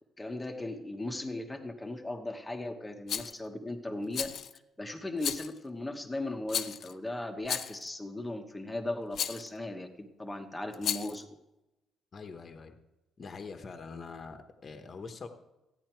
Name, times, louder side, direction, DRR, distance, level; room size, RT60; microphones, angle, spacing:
voice 1, 0.2-4.3 4.8-11.3, left 2 dB, 5° left, 4 dB, 1.1 m, -37 dB
Rattle, 3.1-3.4 4.1-4.6 5.2-5.6 6.5-6.9 7.4-7.9 9.1-9.5 10.7-11.2, left 8 dB, 50° left, 0.5 m, -34 dB
voice 2, 12.1-12.8 13.2-15.3, left 4 dB, 30° left, 7 dB, 1.0 m, -44 dB
15.0 x 10.0 x 4.5 m, 0.97 s
cardioid pair, 175°, 0 cm